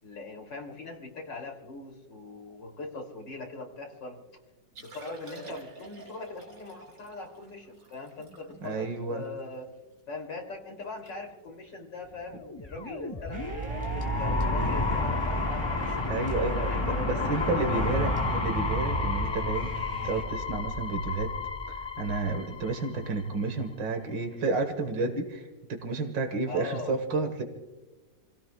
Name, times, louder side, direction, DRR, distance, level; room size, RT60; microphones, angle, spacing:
voice 1, 0.0-4.2 4.8-9.7 10.1-15.9 16.3-18.1 26.5-27.0, left 3 dB, 80° left, 2 dB, 3.6 m, -41 dB
Liquid, 4.6-10.0 10.5-10.6 10.8-11.1 11.4-11.7 12.3-12.5 13.9-14.0, right 1 dB, 65° right, 4.5 m, -48 dB
voice 2, 8.6-9.2 16.1-21.3 21.7-27.4, right 3 dB, 85° right, 5 dB, 2.1 m, -31 dB
sound 1, 12.4-23.3, left 3 dB, 30° left, 0.5 m, -31 dB
sound 2, 13.3-20.2, right 2 dB, 15° right, 2.8 m, -34 dB
29.5 x 16.5 x 2.3 m, 1.2 s
omnidirectional pair, 1.9 m